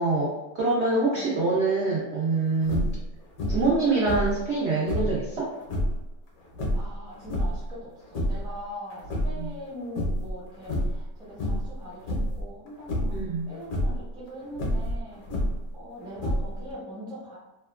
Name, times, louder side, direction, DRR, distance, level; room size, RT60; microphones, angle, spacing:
voice 1, 0.0-2.8 3.5-5.5 9.3-9.5 13.1-13.5, right 3 dB, 70° right, -6 dB, 0.6 m, -25 dB
sound 1, 2.6-3.0 3.4-3.8 4.0-5.2 5.6-6.0 6.5-7.7 8.0-8.5 8.9-9.7 10.0-10.3 10.6-11.0 11.4-11.7 12.0-12.4 12.9-13.2 13.6-14.0 14.5-15.7 16.2-16.7, equal, 65° left, 1.0 m, -28 dB
voice 2, 6.7-13.2 13.5-15.2 15.7-17.4, equal, 5° right, -8 dB, 0.5 m, -41 dB
2.8 x 2.2 x 2.3 m, 1.1 s
omnidirectional pair, 1.8 m